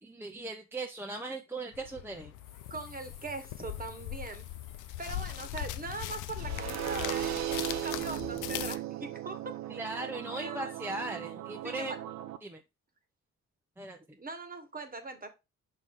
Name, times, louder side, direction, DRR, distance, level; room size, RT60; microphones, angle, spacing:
voice 1, 0.0-2.4 9.7-12.0 12.4-12.6 13.8-14.2, right 2 dB, 10° right, 0.7 m, -38 dB
sound 1, 1.7-8.8, left 14 dB, 90° left, 0.5 m, -40 dB
sound 2, 2.3-8.5, left 6 dB, 55° left, 1.2 m, -58 dB
voice 2, 2.7-4.4 5.0-9.8 10.4-10.7 11.6-12.0 14.2-15.3, right 3 dB, 30° right, 1.3 m, -41 dB
sound 3, 6.4-12.4, right 13 dB, 65° right, 0.7 m, -37 dB
5.6 x 4.7 x 3.6 m
cardioid pair, 90°, 30 cm